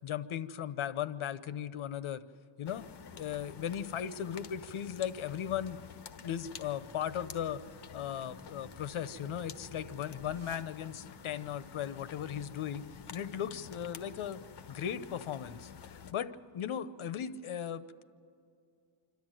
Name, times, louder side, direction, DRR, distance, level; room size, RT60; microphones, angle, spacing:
voice 1, 0.0-2.2 2.6-2.9 3.1-5.8 6.2-7.6 7.9-12.8 13.1-14.4 14.7-18.0, left 9 dB, 75° left, 14 dB, 1.0 m, -37 dB
sound 1, 2.6-16.1, left 7 dB, 55° left, 1.2 m, -50 dB
sound 2, 6.8-11.2, right 8 dB, 90° right, 1.0 m, -57 dB
26.5 x 13.0 x 9.1 m, 2.4 s
cardioid pair, 100°, 49 cm